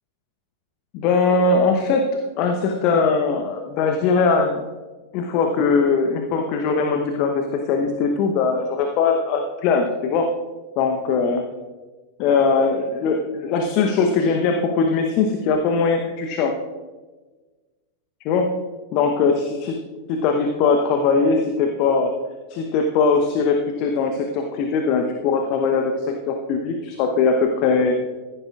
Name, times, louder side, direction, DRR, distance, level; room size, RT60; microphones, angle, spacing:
voice 1, 0.9-2.1 2.4-4.6 5.1-10.3 10.8-11.4 12.2-16.5 18.2-18.5 18.9-19.8 20.1-22.1 22.5-28.0, left 4 dB, 40° left, 4 dB, 1.0 m, -20 dB
15.0 x 11.0 x 2.5 m, 1.3 s
figure-of-eight pair, 90°, 0 cm